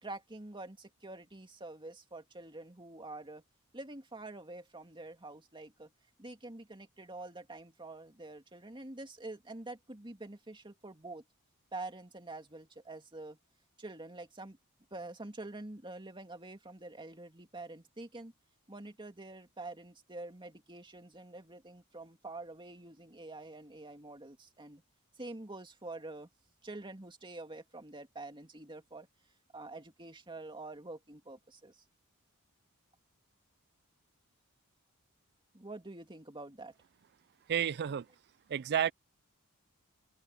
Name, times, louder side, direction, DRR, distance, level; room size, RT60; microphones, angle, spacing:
voice 1, 0.0-3.4 3.7-5.9 6.2-11.2 11.7-13.4 13.8-14.6 14.9-18.3 18.7-24.8 25.2-26.3 26.6-29.1 29.5-31.8 35.5-36.8, right 2 dB, 20° right, 2.5 m, -46 dB
voice 2, 37.5-38.0 38.5-38.9, right 9 dB, 50° right, 0.4 m, -30 dB
open air
head